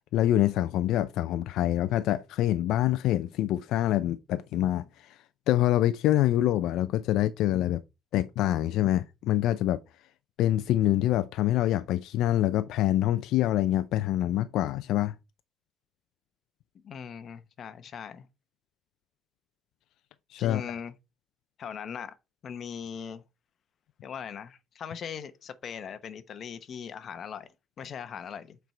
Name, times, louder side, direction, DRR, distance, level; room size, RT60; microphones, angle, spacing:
voice 1, 0.1-5.2 5.5-7.8 8.1-9.8 10.4-15.1 20.3-20.6, left 13 dB, 75° left, 0.5 m, -25 dB
voice 2, 16.8-18.3 20.4-20.9 21.6-22.2 22.4-23.2 24.0-27.5 27.8-28.6, left 7 dB, 45° left, 0.9 m, -39 dB
8.1 x 4.6 x 4.4 m
cardioid pair, 145°, 0 cm